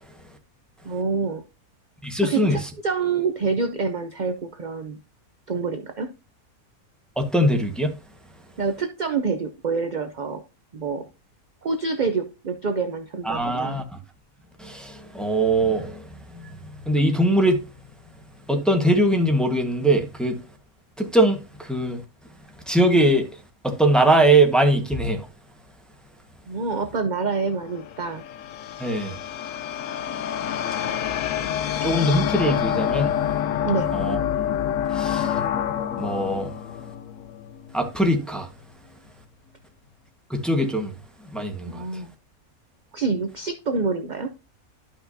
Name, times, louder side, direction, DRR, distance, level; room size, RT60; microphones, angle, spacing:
voice 1, 0.8-1.4 2.2-5.0 5.5-6.1 8.6-10.4 10.7-11.1 11.6-13.8 26.5-28.2 33.6-33.9 41.6-42.1 42.9-44.3, right 4 dB, 45° right, 0.6 m, -27 dB
voice 2, 2.0-2.7 7.2-8.0 13.2-14.0 14.6-17.7 18.5-20.4 21.0-22.0 22.7-25.3 28.8-29.1 31.8-33.1 33.9-34.2 34.9-35.4 36.0-36.5 37.7-38.5 40.3-40.9 41.3-41.8, right 1 dB, ahead, 1.2 m, -22 dB
sound 1, 27.5-37.8, left 10 dB, 70° left, 1.0 m, -27 dB
12.0 x 5.7 x 2.7 m
omnidirectional pair, 1.5 m